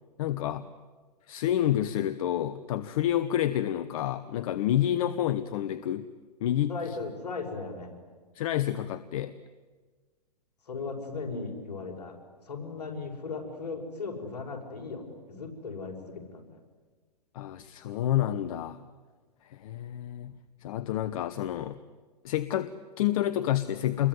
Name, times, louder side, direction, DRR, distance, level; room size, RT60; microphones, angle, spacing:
voice 1, 0.2-0.7 1.3-6.1 6.4-6.7 8.3-9.3 17.3-18.8 19.4-21.8 22.2-24.1, left 12 dB, 55° left, 14 dB, 1.1 m, -29 dB
voice 2, 6.7-7.9 10.7-12.2 12.4-16.5, left 4 dB, 75° left, 3 dB, 5.9 m, -37 dB
28.5 x 22.0 x 9.6 m, 1.4 s
hypercardioid pair, 115°, 21 cm